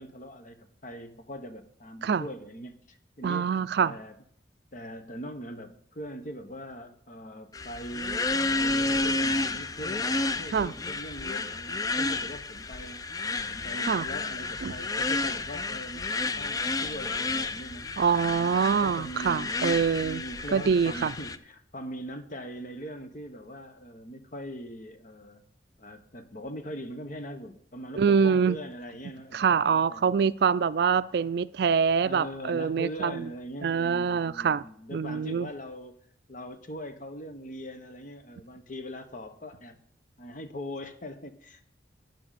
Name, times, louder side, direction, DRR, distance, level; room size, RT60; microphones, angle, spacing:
voice 1, 0.0-4.1 4.7-13.1 13.5-16.1 16.4-19.6 20.0-25.4 25.8-30.1 32.0-36.0 36.3-39.8 40.2-41.6, equal, 45° left, 1.2 m, -41 dB
voice 2, 3.2-3.9 10.5-10.7 13.9-14.1 14.6-14.7 18.0-20.2 20.5-21.1 28.0-28.6 29.3-33.3 33.6-34.6 34.9-35.5, right 6 dB, 60° right, 0.4 m, -25 dB
sound 1, 7.5-21.4, left 3 dB, 20° left, 0.4 m, -31 dB
12.5 x 8.8 x 4.1 m
head